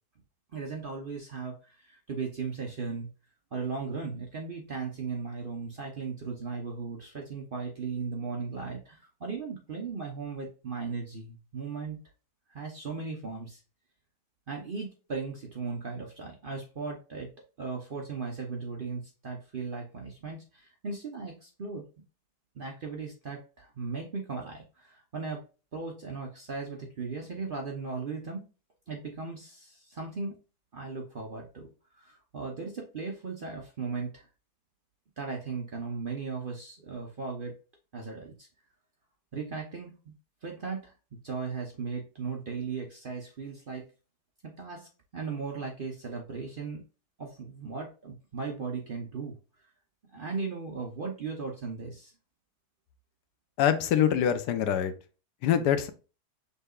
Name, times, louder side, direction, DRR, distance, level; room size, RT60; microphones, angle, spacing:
voice 1, 0.5-3.1 3.5-12.0 12.5-13.6 14.5-17.3 17.6-21.9 22.5-25.4 25.7-28.5 28.9-30.4 30.7-34.3 35.2-37.6 37.9-38.5 39.3-40.1 40.4-40.9 41.2-43.9 44.4-46.8 47.2-49.4 50.1-52.1, right 4 dB, 50° right, 0.7 m, -37 dB
voice 2, 53.6-54.9 55.4-55.9, left 9 dB, 85° left, 1.2 m, -24 dB
5.5 x 3.3 x 2.3 m
omnidirectional pair, 1.7 m